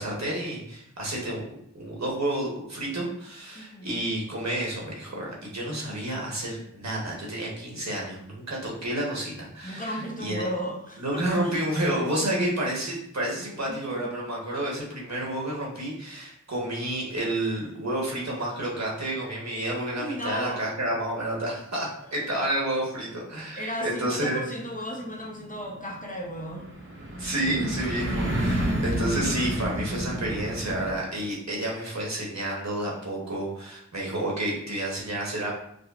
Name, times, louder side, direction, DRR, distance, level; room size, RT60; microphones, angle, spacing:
voice 1, 0.0-1.4 1.7-10.4 11.0-24.4 27.2-35.5, right 1 dB, 60° right, -3 dB, 1.1 m, -30 dB
voice 2, 3.5-3.9 9.6-11.5 13.7-14.1 20.0-20.7 23.5-26.7, equal, 25° left, -2 dB, 0.7 m, -35 dB
sound 1, 24.7-30.9, right 1 dB, 40° right, 0.9 m, -30 dB
5.0 x 2.1 x 2.4 m, 0.71 s
wide cardioid pair, 45°, 31 cm